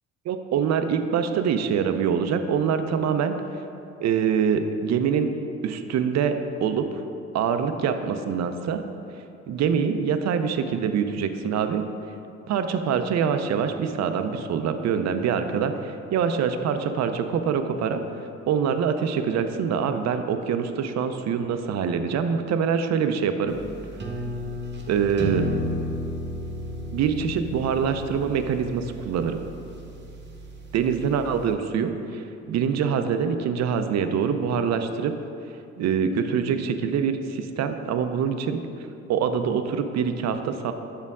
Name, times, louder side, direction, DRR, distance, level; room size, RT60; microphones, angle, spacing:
voice 1, 0.3-3.3 4.0-5.4 5.6-6.9 7.3-8.8 9.5-11.9 12.5-18.0 18.5-23.6 24.9-25.5 26.9-29.4 30.7-35.1 35.8-38.6 39.1-40.7, right 7 dB, 60° right, 8 dB, 0.5 m, -25 dB
sound 1, 23.5-31.5, equal, 35° right, 0.8 m, -33 dB
6.9 x 4.5 x 3.6 m, 2.6 s
cardioid pair, 90°, 30 cm